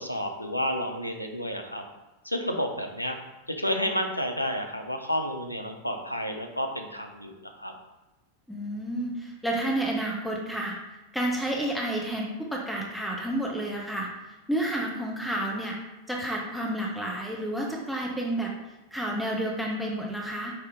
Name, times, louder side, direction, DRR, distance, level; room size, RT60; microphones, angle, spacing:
voice 1, 0.0-1.8 2.2-3.2 3.6-7.7, equal, 90° left, 4 dB, 0.5 m, -30 dB
voice 2, 8.5-10.7 11.1-14.1 14.5-15.8 16.1-18.5 18.9-20.5, right 1 dB, ahead, -1 dB, 0.6 m, -30 dB
4.9 x 2.7 x 3.5 m, 1.0 s
figure-of-eight pair, 90°, 0 cm